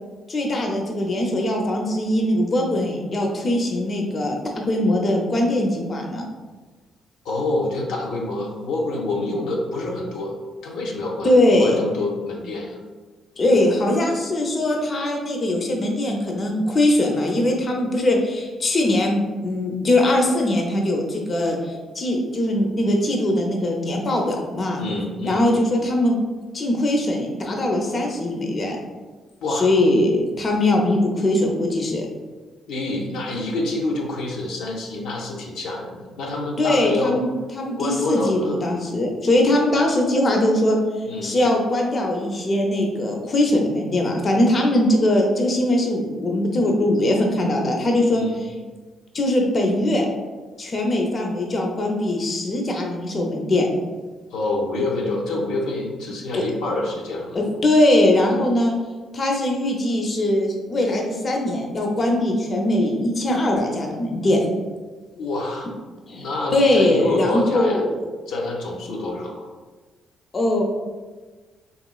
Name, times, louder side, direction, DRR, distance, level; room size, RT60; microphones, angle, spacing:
voice 1, 0.3-4.4 4.7-6.3 11.2-11.8 13.4-24.8 25.2-26.2 26.5-28.8 29.5-32.1 36.6-40.8 41.2-48.2 49.1-50.1 50.6-53.7 56.3-56.4 57.3-58.8 59.1-64.4 66.1-68.0 70.3-70.6, left 1 dB, 40° left, 1 dB, 0.5 m, -21 dB
voice 2, 7.2-10.3 10.6-12.8 24.8-25.4 29.4-29.7 32.7-37.2 37.8-38.6 41.0-41.4 48.1-48.4 54.3-57.4 65.1-65.7 66.1-67.8 68.3-69.5, left 2 dB, 90° left, -1 dB, 0.5 m, -27 dB
2.9 x 2.9 x 2.3 m, 1.3 s
cardioid pair, 90°, 0 cm